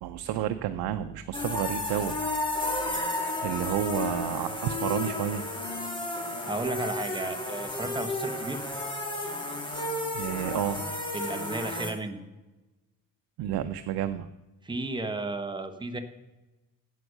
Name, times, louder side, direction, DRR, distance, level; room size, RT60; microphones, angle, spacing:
voice 1, 0.0-2.2 3.4-5.4 10.1-10.8 13.4-14.3, right 11 dB, 85° right, 8 dB, 0.6 m, -30 dB
sound 1, 1.3-11.9, left 2 dB, 15° left, 1.9 m, -32 dB
voice 2, 6.4-8.6 11.1-12.2 14.6-16.0, right 2 dB, 10° right, 5 dB, 1.1 m, -33 dB
9.3 x 8.2 x 6.5 m, 1.1 s
cardioid pair, 135°, 37 cm